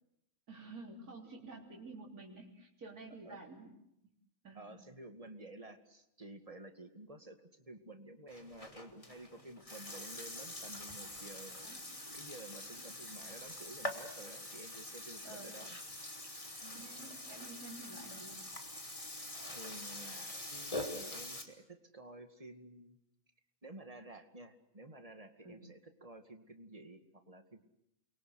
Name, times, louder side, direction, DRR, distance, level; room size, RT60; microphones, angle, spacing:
voice 1, 0.5-3.8 4.4-4.8 11.5-11.8 12.6-12.8 15.2-15.5 16.7-18.5 25.4-25.7, right 2 dB, 80° right, -2 dB, 4.1 m, -51 dB
voice 2, 4.6-11.5 12.1-15.8 16.2-16.9 19.2-23.0 23.6-27.6, right 1 dB, 25° right, 6 dB, 2.2 m, -52 dB
Burping eructation, 8.3-21.4, left 1 dB, 20° left, 2.8 m, -45 dB
29.5 x 23.0 x 8.0 m, 0.84 s
omnidirectional pair, 1.5 m